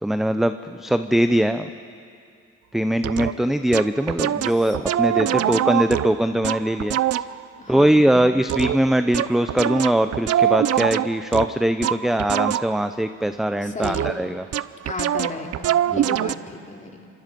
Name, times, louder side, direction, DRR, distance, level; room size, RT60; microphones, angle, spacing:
voice 1, 0.0-1.7 2.7-7.2 7.7-14.5 15.9-16.0, right 1 dB, ahead, 10 dB, 0.6 m, -21 dB
sound 1, 3.0-3.3 3.7-7.4 8.5-12.9 13.8-14.3 14.5-16.4, right 11 dB, 55° right, 0.6 m, -24 dB
voice 2, 4.5-4.8 5.2-5.7 7.6-8.4 13.6-14.3 14.8-17.1, left 3 dB, 25° left, 1 dB, 3.0 m, -35 dB
26.0 x 25.0 x 5.3 m, 2.4 s
cardioid pair, 90°, 30 cm